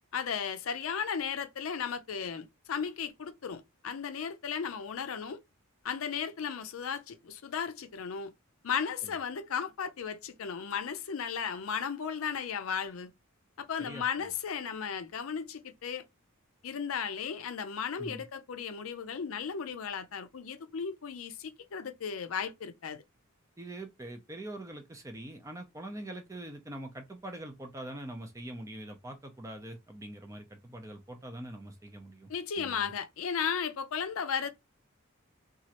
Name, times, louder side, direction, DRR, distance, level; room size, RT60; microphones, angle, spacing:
voice 1, 0.1-5.4 5.8-8.3 8.6-13.1 13.6-16.0 16.6-23.0 32.3-34.5, left 7 dB, 75° left, 0.5 m, -35 dB
voice 2, 13.8-14.3 18.0-18.2 23.6-32.3 32.6-32.9, right 1 dB, 15° right, 0.5 m, -43 dB
3.0 x 2.4 x 2.9 m
head